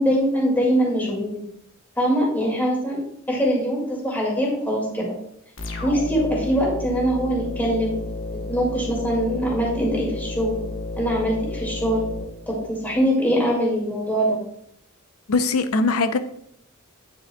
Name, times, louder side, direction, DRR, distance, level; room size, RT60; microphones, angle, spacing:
voice 1, 0.0-1.4 2.0-3.0 3.3-5.1 5.8-8.0 8.5-10.6 11.0-12.1 12.5-14.4, equal, 10° left, -3 dB, 2.1 m, -23 dB
sound 1, 5.6-13.1, left 2 dB, 65° left, 1.0 m, -32 dB
voice 2, 15.3-16.2, left 3 dB, 85° left, 10 dB, 0.6 m, -21 dB
9.5 x 6.3 x 2.3 m, 0.73 s
head